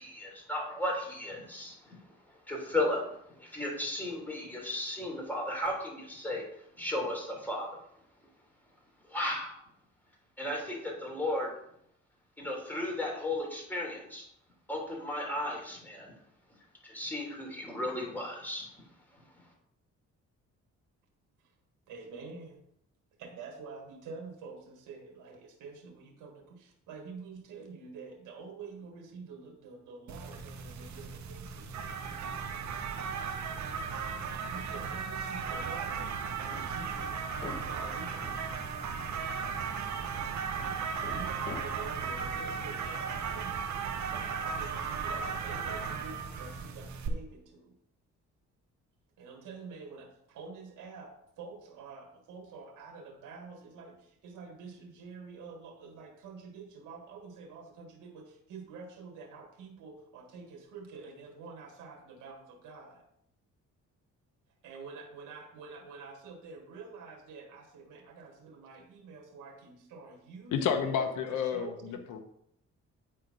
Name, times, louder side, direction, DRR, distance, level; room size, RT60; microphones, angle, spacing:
voice 1, 0.0-2.2 2.5-7.8 9.1-9.5 10.4-11.5 12.4-14.3 14.7-16.1 16.8-18.7 19.1-19.4, left 1 dB, 5° left, 3.5 m, -35 dB
voice 2, 21.9-22.6 23.2-31.8 34.5-38.4 41.0-43.7 44.1-47.7 49.2-63.0 64.6-70.9 71.3-72.0, right 4 dB, 85° right, 1.7 m, -47 dB
sound 1, 30.1-47.1, right 6 dB, 70° right, 1.1 m, -36 dB
Hammer, 35.7-43.5, left 3 dB, 35° left, 1.2 m, -49 dB
voice 3, 70.5-72.2, left 7 dB, 85° left, 1.0 m, -30 dB
9.4 x 4.4 x 5.3 m
cardioid pair, 90°, 30 cm